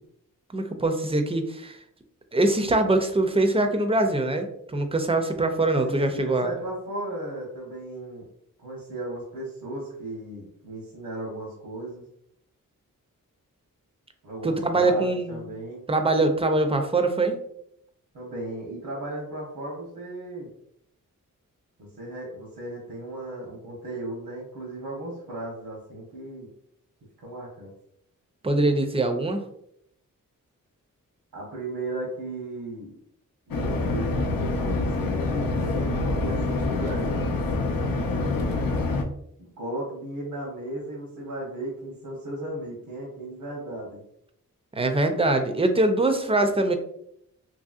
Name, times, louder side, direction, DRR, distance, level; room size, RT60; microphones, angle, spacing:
voice 1, 0.5-1.8 2.3-4.5 4.7-6.5 14.4-15.4 15.9-17.4 28.4-29.4 44.7-46.7, right 2 dB, 20° right, 6 dB, 0.4 m, -23 dB
voice 2, 5.8-8.3 8.6-12.0 14.2-15.9 18.1-20.5 21.8-26.5 27.2-27.7 31.3-33.0 33.5-37.2 38.1-38.7 39.4-44.0, right 1 dB, 80° right, -5 dB, 0.9 m, -36 dB
sound 1, 33.5-39.0, left 3 dB, 85° left, 0.5 m, -26 dB
2.9 x 2.7 x 2.4 m, 0.72 s
wide cardioid pair, 75°, 33 cm